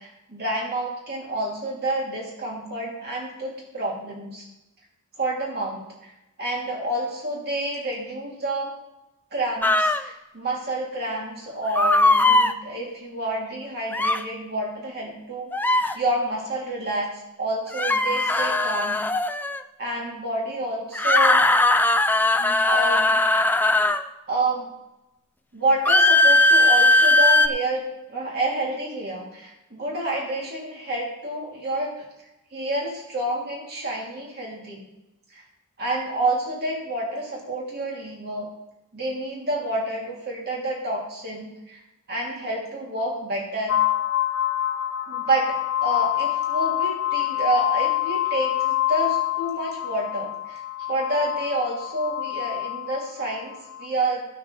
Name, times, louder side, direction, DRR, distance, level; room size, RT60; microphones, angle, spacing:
voice 1, 0.0-4.4 5.2-6.1 6.4-8.7 9.3-17.1 17.4-19.0 19.8-21.4 22.4-23.2 24.3-24.7 25.5-32.0 32.5-34.9 35.3-35.4 35.8-38.5 38.9-41.8 42.1-43.8 45.1-50.6 50.9-54.3, right 1 dB, 45° right, -3 dB, 2.7 m, -28 dB
sound 1, 9.6-10.0 11.8-12.5 13.9-14.2 15.5-15.9 17.7-19.6 20.9-24.0 25.9-27.5, left 2 dB, 10° left, 0.5 m, -19 dB
sound 2, 43.7-53.9, left 14 dB, 75° left, 1.0 m, -26 dB
15.5 x 6.3 x 4.0 m, 0.92 s
head